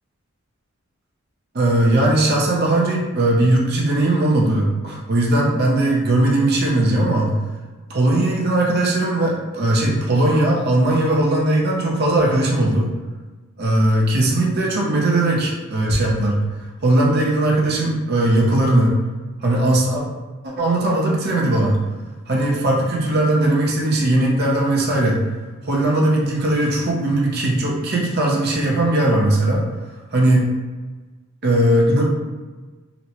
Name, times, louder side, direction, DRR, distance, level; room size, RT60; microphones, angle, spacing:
voice 1, 1.5-7.4 7.9-12.9 13.6-16.4 16.8-19.0 19.4-20.0 20.4-21.8 22.3-25.2 25.6-29.6 30.1-30.4 31.4-32.0, right 1 dB, 45° right, -2 dB, 0.6 m, -18 dB
4.0 x 2.1 x 2.8 m, 1.3 s
head